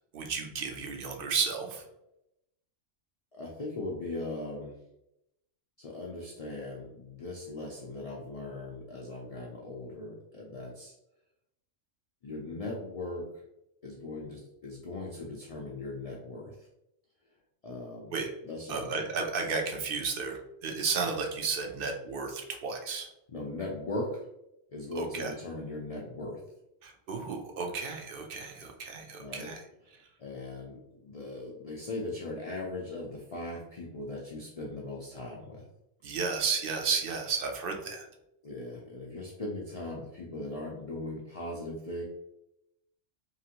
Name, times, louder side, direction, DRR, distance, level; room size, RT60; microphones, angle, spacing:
voice 1, 0.1-1.8 18.1-18.3 18.7-23.1 24.9-25.3 26.8-29.6 29.9-30.1 36.0-38.1, right 5 dB, 60° right, 3 dB, 0.6 m, -33 dB
voice 2, 3.3-4.8 5.8-10.9 12.2-13.3 13.8-16.7 17.6-18.1 18.5-19.0 23.3-24.2 24.7-26.4 29.2-29.5 30.2-35.7 38.4-42.0, left 2 dB, 65° left, -2 dB, 0.3 m, -39 dB
2.9 x 2.5 x 2.8 m, 0.84 s
omnidirectional pair, 1.2 m